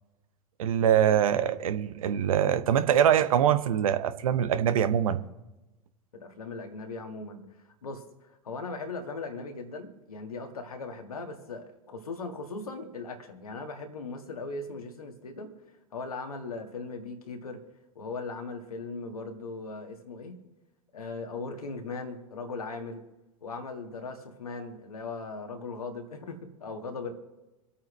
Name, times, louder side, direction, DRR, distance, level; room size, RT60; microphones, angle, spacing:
voice 1, 0.6-5.2, right 9 dB, 70° right, 12 dB, 0.8 m, -24 dB
voice 2, 6.1-7.5 7.8-15.5 15.9-17.6 18.0-20.4 20.9-23.0 23.4-27.1, left 3 dB, 80° left, 4 dB, 1.8 m, -38 dB
25.5 x 8.7 x 3.2 m, 1.0 s
figure-of-eight pair, 90°, 19 cm